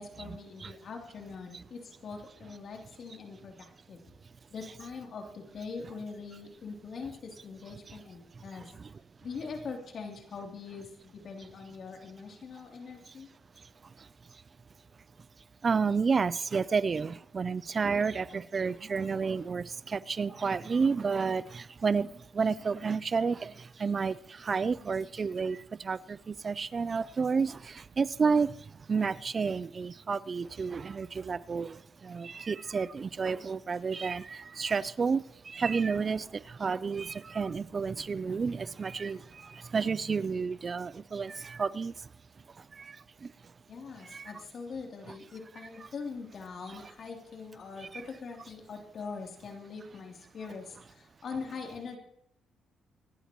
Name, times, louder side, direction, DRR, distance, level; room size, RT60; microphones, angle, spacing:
voice 1, 0.0-4.0 4.5-8.7 9.2-13.3 43.7-52.0, left 5 dB, 55° left, 3.1 m, -42 dB
voice 2, 13.6-14.4 15.6-42.1 42.5-43.3 44.0-44.3 47.9-48.0, right 5 dB, 40° right, 0.4 m, -31 dB
26.0 x 11.0 x 3.0 m
cardioid pair, 90°, 0 cm